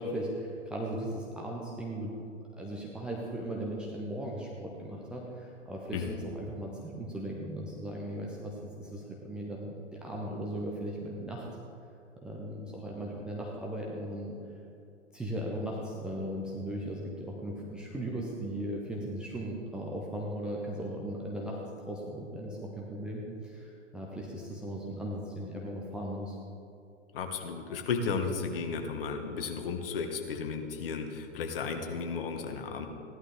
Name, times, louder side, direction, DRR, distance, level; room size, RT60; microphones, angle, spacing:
voice 1, 0.0-2.1 2.6-11.5 12.2-14.4 15.1-21.6 21.9-26.4, right 1 dB, 5° right, -4 dB, 0.4 m, -37 dB
voice 2, 27.1-32.9, left 5 dB, 50° left, 5 dB, 1.4 m, -34 dB
15.5 x 11.0 x 3.5 m, 2.6 s
figure-of-eight pair, 110°, 37 cm